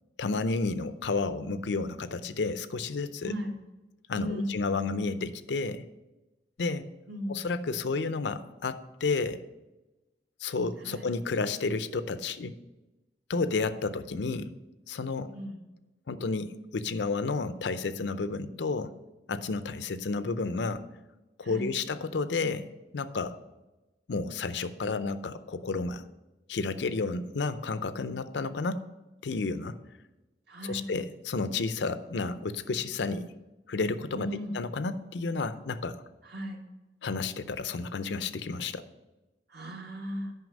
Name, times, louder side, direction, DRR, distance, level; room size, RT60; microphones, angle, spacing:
voice 1, 0.2-3.3 4.1-5.8 6.6-6.9 7.3-9.4 10.4-12.6 13.3-14.5 14.9-15.3 16.1-18.9 19.3-20.8 21.4-22.7 22.9-23.4 24.1-26.0 26.5-28.8 29.2-29.8 30.6-33.3 33.7-34.3 34.5-36.0 37.0-38.8, left 4 dB, 80° left, 13 dB, 0.5 m, -31 dB
voice 2, 3.2-3.5 4.1-4.6 7.1-7.5 10.8-11.1 15.3-15.6 21.4-21.8 30.5-30.9 34.1-34.6 36.2-36.6 39.5-40.3, equal, 65° right, 0 dB, 1.5 m, -36 dB
9.4 x 5.5 x 5.2 m, 1.1 s
head